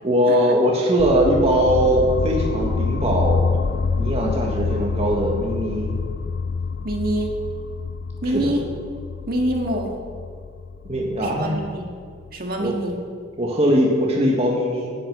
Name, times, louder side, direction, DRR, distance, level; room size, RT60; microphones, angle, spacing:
voice 1, 0.0-3.4 4.0-5.9 8.3-8.5 10.9-11.5 12.6-12.7 13.4-14.9, equal, 30° right, -2 dB, 1.7 m, -20 dB
sound 1, 1.0-12.9, left 4 dB, 50° left, 0.4 m, -27 dB
voice 2, 6.8-7.3 8.2-8.6 9.3-10.0 11.2-11.9 12.3-13.0, right 1 dB, 50° right, 1 dB, 1.9 m, -25 dB
10.0 x 10.0 x 8.0 m, 2.1 s
head